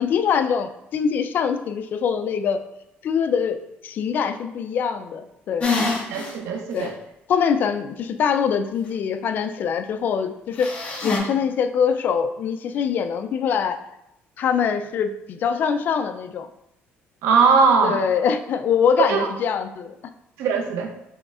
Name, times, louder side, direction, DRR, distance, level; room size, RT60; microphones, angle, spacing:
voice 1, 0.0-2.6 3.0-5.8 6.7-6.9 7.3-10.7 11.0-13.8 14.4-16.5 17.8-20.0, left 7 dB, 45° left, 9 dB, 0.3 m, -23 dB
sound 1, 5.6-6.3 6.8-6.9 10.6-11.2, left 4 dB, 30° left, 1.0 m, -25 dB
voice 2, 6.1-6.9 17.2-18.0 19.0-19.3 20.4-20.9, right 5 dB, 90° right, 4 dB, 0.6 m, -19 dB
6.2 x 3.1 x 2.4 m, 0.84 s
cardioid pair, 150°, 4 cm